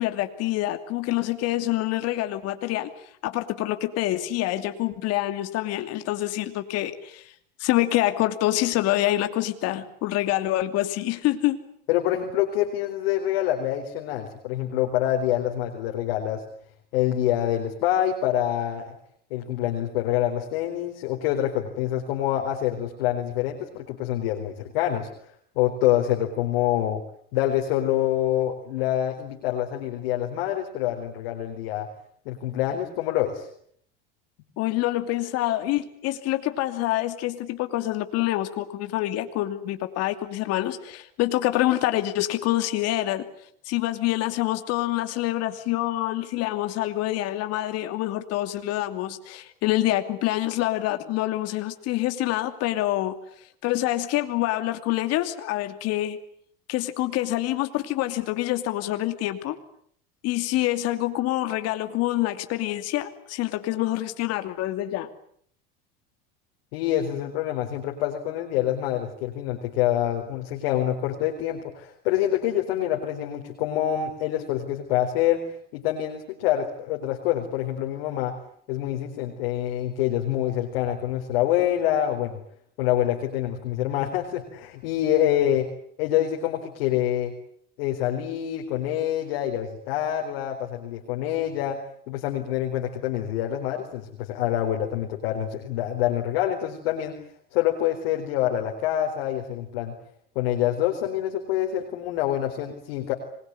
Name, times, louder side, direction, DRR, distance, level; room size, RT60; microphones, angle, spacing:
voice 1, 0.0-2.9 3.2-7.3 7.6-11.6 34.6-43.3 43.7-53.1 53.6-56.2 56.7-59.6 60.2-65.1, left 15 dB, 55° left, 9 dB, 2.8 m, -26 dB
voice 2, 11.9-16.4 16.9-18.9 19.3-25.1 25.6-27.0 27.3-31.9 32.3-33.5 66.7-75.4 75.7-78.3 78.7-82.4 82.8-85.7 86.0-87.3 87.8-91.8 92.1-97.2 97.5-99.9 100.4-103.1, left 12 dB, 75° left, 2 dB, 4.2 m, -26 dB
26.0 x 21.5 x 9.7 m, 0.67 s
supercardioid pair, 105°, 29 cm